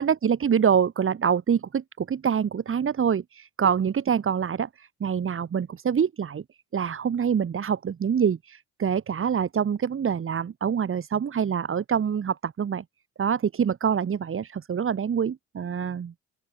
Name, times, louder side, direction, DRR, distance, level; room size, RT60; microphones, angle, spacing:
voice 1, 0.0-6.4 6.7-12.8 13.2-16.1, right 7 dB, 45° right, 1.9 m, -25 dB
open air
cardioid pair, 90°, 30 cm